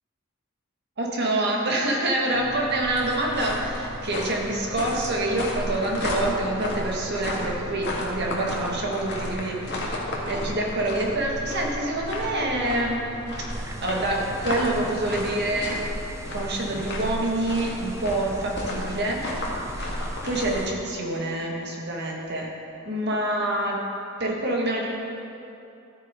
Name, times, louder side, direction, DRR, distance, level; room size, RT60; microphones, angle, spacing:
voice 1, 1.0-13.0 13.4-15.8 16.3-19.9 20.2-22.5 22.8-23.8 24.2-24.9, right 1 dB, 55° right, -1 dB, 1.6 m, -27 dB
sound 1, 2.3-20.6, left 1 dB, 55° left, 1.8 m, -33 dB
sound 2, 2.3-15.6, right 1 dB, 85° right, 1.8 m, -43 dB
sound 3, 13.5-20.7, right 1 dB, 15° right, 0.5 m, -40 dB
13.0 x 9.1 x 3.7 m, 2.8 s
head